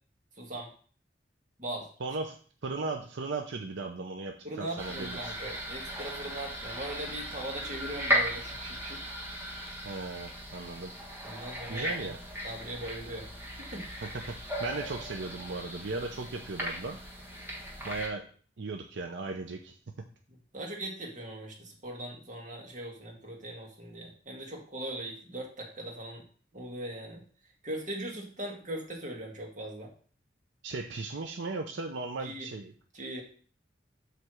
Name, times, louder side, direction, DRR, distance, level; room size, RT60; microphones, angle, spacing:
voice 1, 0.4-0.7 1.6-1.9 4.4-9.0 11.2-12.1 12.4-13.3 13.6-13.9 20.3-26.3 26.5-27.2 27.6-29.9 32.2-32.5 32.9-33.2, right 1 dB, 40° right, 0 dB, 1.8 m, -40 dB
voice 2, 2.0-2.4 2.6-5.3 9.8-10.9 11.7-12.2 14.0-17.0 17.8-18.3 18.6-19.8 30.6-32.7, right 3 dB, 75° right, 4 dB, 0.7 m, -37 dB
sound 1, 4.8-18.1, equal, 15° right, 1.4 m, -37 dB
7.6 x 3.4 x 6.3 m, 0.43 s
head